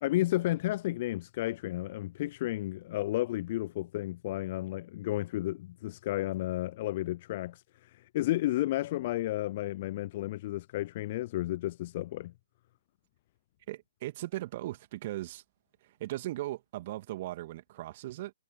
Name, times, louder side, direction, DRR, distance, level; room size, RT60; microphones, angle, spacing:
voice 1, 0.0-12.3, left 16 dB, 35° left, 0.5 m, -32 dB
voice 2, 13.7-15.4 15.8-18.3, right 16 dB, 35° right, 2.4 m, -38 dB
figure-of-eight pair, 130°, 0 cm